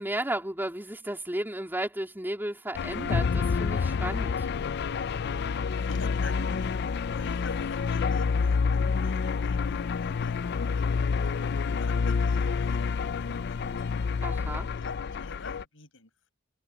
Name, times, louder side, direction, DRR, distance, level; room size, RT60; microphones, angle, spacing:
voice 1, 0.0-4.5 14.2-14.7, right 1 dB, 10° right, 3.7 m, -33 dB
sound 1, 2.7-15.6, left 5 dB, 55° left, 0.4 m, -28 dB
voice 2, 5.8-11.1 11.8-12.8 13.1-13.6 14.6-16.3, left 3 dB, 70° left, 7.6 m, -46 dB
head